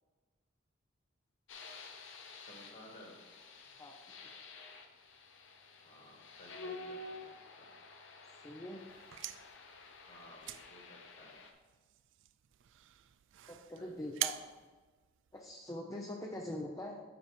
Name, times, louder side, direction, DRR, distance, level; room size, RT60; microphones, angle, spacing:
sound 1, 1.5-11.5, left 3 dB, 65° left, 0.8 m, -51 dB
voice 1, 2.5-3.2 5.8-7.8 10.1-11.4 13.8-14.4, left 1 dB, 45° left, -1 dB, 1.9 m, -56 dB
voice 2, 8.4-8.9 13.5-14.3 15.3-17.0, left 1 dB, 15° left, 0 dB, 0.6 m, -43 dB
sound 2, 8.9-15.7, right 14 dB, 65° right, 0.3 m, -45 dB
8.0 x 4.7 x 4.9 m, 1.3 s
head